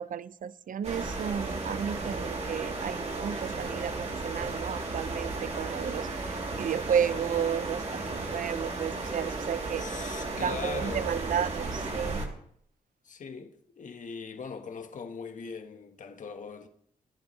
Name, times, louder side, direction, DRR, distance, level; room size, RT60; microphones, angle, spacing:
voice 1, 0.0-9.8 10.4-12.2, right 8 dB, 65° right, 0.7 m, -32 dB
sound 1, 0.8-12.3, right 3 dB, 50° right, 3.2 m, -34 dB
voice 2, 9.8-11.2 13.0-16.7, left 5 dB, 60° left, 1.4 m, -40 dB
26.0 x 11.0 x 3.2 m
cardioid pair, 55°, 15 cm